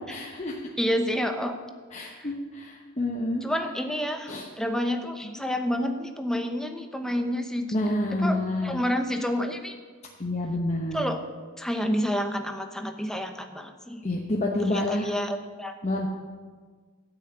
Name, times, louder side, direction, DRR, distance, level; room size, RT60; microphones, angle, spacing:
voice 1, 0.1-0.6 1.9-3.4 4.3-4.5 5.2-5.3 7.7-8.8 10.2-11.0 14.0-15.1 15.8-16.1, left 1 dB, 35° left, -2 dB, 1.0 m, -28 dB
voice 2, 0.8-1.5 3.4-7.7 8.2-9.8 10.9-11.2 11.6-14.0 14.7-15.7, equal, 5° left, 5 dB, 0.9 m, -29 dB
12.0 x 6.4 x 8.8 m, 1.5 s
head